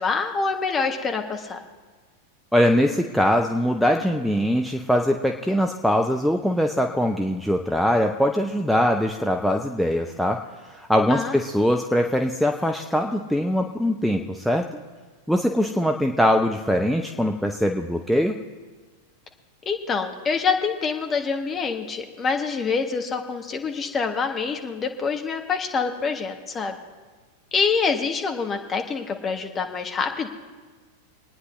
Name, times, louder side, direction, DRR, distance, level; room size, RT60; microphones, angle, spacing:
voice 1, 0.0-1.6 11.1-11.3 19.6-26.8 27.5-30.3, left 5 dB, 20° left, 4 dB, 1.4 m, -26 dB
voice 2, 2.5-10.4 10.7-14.8 15.3-18.4, equal, ahead, 3 dB, 0.6 m, -22 dB
26.0 x 9.5 x 3.2 m, 1.4 s
figure-of-eight pair, 90°, 0 cm